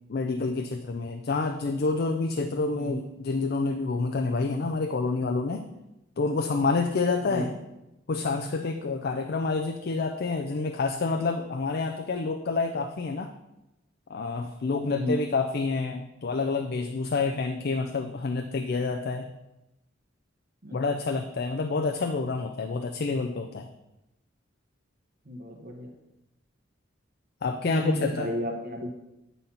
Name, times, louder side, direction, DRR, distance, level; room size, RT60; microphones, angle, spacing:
voice 1, 0.1-5.7 6.2-7.6 8.1-13.3 14.1-19.3 20.7-23.7 27.4-28.3, left 3 dB, 55° left, 5 dB, 0.4 m, -28 dB
voice 2, 14.8-15.2 20.6-20.7 25.3-25.9 27.7-28.9, equal, 50° right, 2 dB, 1.0 m, -32 dB
8.7 x 4.0 x 5.7 m, 0.95 s
head